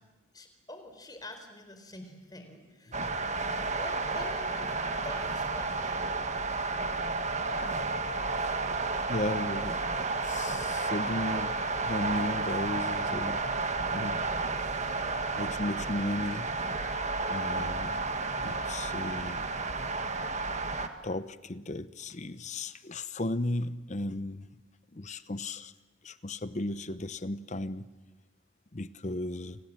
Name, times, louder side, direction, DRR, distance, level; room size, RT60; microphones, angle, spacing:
voice 1, 0.3-3.0 3.8-4.7 5.0-6.0, left 1 dB, 20° left, 4.2 m, -45 dB
sound 1, 2.9-20.9, right 3 dB, 35° right, 1.6 m, -32 dB
voice 2, 9.1-9.8 10.2-11.5 11.8-14.2 15.3-16.5 17.3-18.0 18.4-19.5 21.0-24.5 24.9-25.7 26.0-27.9 28.7-29.6, left 1 dB, 35° left, 0.8 m, -35 dB
30.0 x 26.5 x 7.6 m
head